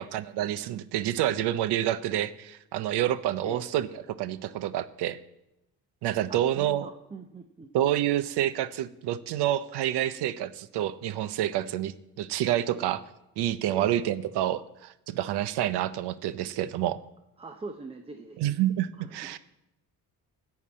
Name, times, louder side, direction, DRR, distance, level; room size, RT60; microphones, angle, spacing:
voice 1, 0.0-3.9 4.2-5.2 6.0-6.9 7.7-13.0 13.4-17.0 18.4-19.4, right 12 dB, 85° right, 15 dB, 0.7 m, -28 dB
voice 2, 6.3-7.7 13.7-14.0 17.4-18.6 18.9-19.4, right 3 dB, 15° right, 6 dB, 0.6 m, -42 dB
14.0 x 4.7 x 8.5 m, 0.89 s
cardioid pair, 130°, 39 cm